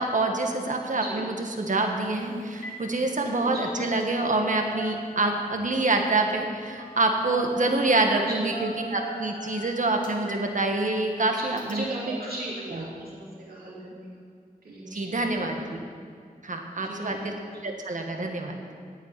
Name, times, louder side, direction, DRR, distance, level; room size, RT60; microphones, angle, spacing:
voice 1, 0.0-11.8 12.7-12.8 14.9-15.8 16.4-17.1 17.6-18.5, right 2 dB, 55° right, 3 dB, 1.7 m, -26 dB
Telephone, 2.0-2.2 2.5-2.8 3.1-4.4 4.7-5.6 6.8-7.0 7.3-8.0 8.5-10.5 10.9-11.0 11.6-11.7, right 1 dB, 65° left, 2.9 m, -40 dB
voice 2, 11.3-14.2 14.6-15.6 16.8-17.6, right 2 dB, 90° right, -6 dB, 3.2 m, -37 dB
9.3 x 8.3 x 9.5 m, 2.2 s
wide cardioid pair, 60°, 15 cm